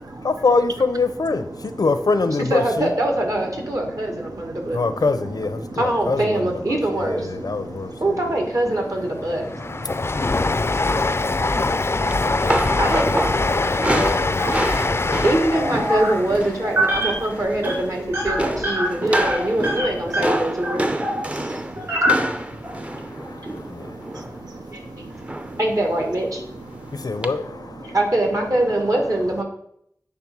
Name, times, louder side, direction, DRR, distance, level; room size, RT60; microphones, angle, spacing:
voice 1, 0.2-2.9 4.7-8.3 9.9-10.0 12.4-15.2 15.5-15.7 22.8-24.3 26.8-28.0, left 3 dB, 90° left, 0.6 m, -26 dB
voice 2, 2.5-4.8 5.8-7.3 8.0-9.5 12.8-13.1 15.2-20.8 24.7-24.8 25.6-26.4 27.8-29.4, right 1 dB, 60° right, 1.8 m, -23 dB
voice 3, 3.6-5.1 5.6-5.8 6.3-6.5 7.3-8.0 9.2-12.8 13.5-15.2 17.0-17.6 18.4-18.6 18.9-19.1 20.1-25.6 26.5-27.3 27.8-28.0, right 2 dB, 90° right, 0.6 m, -40 dB
Train, 8.5-18.7 19.1-20.0 20.3-20.4, left 3 dB, 40° left, 0.4 m, -24 dB
sound 1, 12.1-16.6 16.9-17.2 17.5-18.0 18.4-24.4 25.3-25.6 26.0-26.2 27.2-27.3, right 1 dB, 20° right, 0.6 m, -28 dB
sound 2, 14.4-15.0 15.5-16.3 16.6-17.2 17.5-17.7 18.1-21.2 21.8-22.7, right 1 dB, 40° right, 3.3 m, -24 dB
8.5 x 3.5 x 6.0 m
wide cardioid pair, 60°, 6 cm